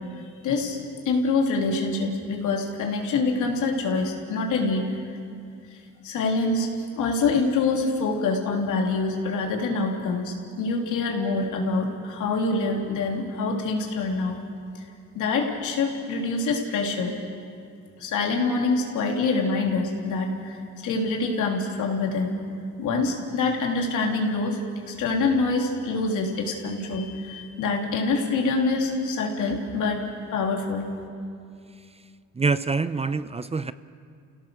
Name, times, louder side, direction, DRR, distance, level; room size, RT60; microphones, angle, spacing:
voice 1, 0.4-0.8 1.1-4.9 6.0-6.7 7.0-14.4 14.8-14.9 15.2-17.2 18.0-22.4 22.8-24.6 24.9-30.0 30.3-30.9, left 3 dB, 80° left, 0 dB, 3.4 m, -25 dB
voice 2, 32.3-33.7, right 4 dB, 20° right, 14 dB, 0.6 m, -25 dB
30.0 x 17.0 x 6.6 m, 2.4 s
cardioid pair, 90°, 30 cm